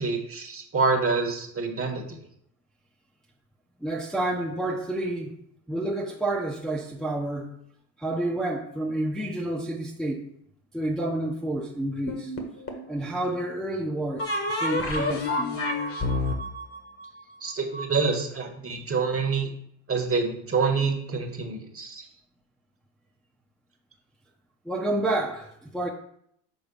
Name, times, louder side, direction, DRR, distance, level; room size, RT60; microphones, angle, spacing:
voice 1, 0.0-2.0 17.4-19.5 19.9-22.1, right 4 dB, 30° right, 3 dB, 1.4 m, -26 dB
voice 2, 3.8-5.3 5.7-7.5 8.0-10.3 10.7-12.3 12.9-15.6 24.6-25.9, right 1 dB, ahead, -4 dB, 0.9 m, -29 dB
sound 1, 12.1-12.9 14.2-17.8, left 2 dB, 30° left, 1.3 m, -29 dB
5.4 x 3.9 x 5.4 m, 0.70 s
supercardioid pair, 85°, 46 cm